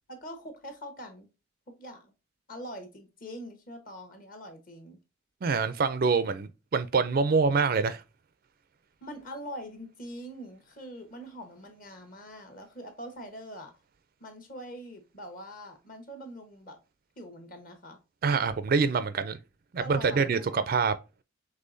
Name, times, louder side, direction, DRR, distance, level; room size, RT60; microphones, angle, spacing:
voice 1, 0.1-1.3 1.7-2.1 2.5-5.0 9.0-13.7 14.2-16.8 17.2-18.0 19.8-21.0, equal, 40° left, 1.1 m, -43 dB
voice 2, 5.4-8.0 18.2-19.4 19.7-20.9, right 5 dB, 45° right, 0.4 m, -25 dB
5.5 x 3.3 x 2.6 m
head